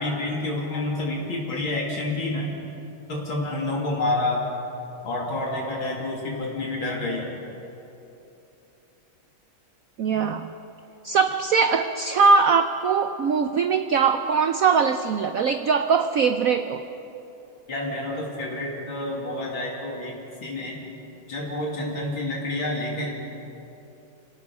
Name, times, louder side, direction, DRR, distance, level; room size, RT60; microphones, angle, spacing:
voice 1, 0.0-2.5 3.1-4.5 5.0-7.3 17.7-20.8 21.3-23.1, left 2 dB, 75° left, -2 dB, 3.5 m, -28 dB
voice 2, 10.0-10.5 11.0-16.9, right 5 dB, 70° right, 8 dB, 0.8 m, -21 dB
27.0 x 18.0 x 5.5 m, 2.9 s
omnidirectional pair, 2.2 m